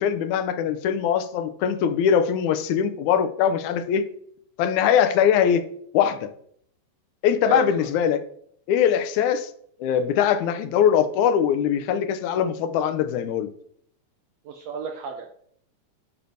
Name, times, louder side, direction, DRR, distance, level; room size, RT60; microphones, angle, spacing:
voice 1, 0.0-4.0 4.6-5.7 5.9-6.3 7.2-8.2 8.7-9.5 9.8-13.5, left 8 dB, 80° left, 10 dB, 2.0 m, -22 dB
voice 2, 7.5-7.9 14.4-15.5, right 6 dB, 75° right, 4 dB, 1.5 m, -32 dB
10.0 x 5.9 x 2.6 m, 0.65 s
omnidirectional pair, 3.5 m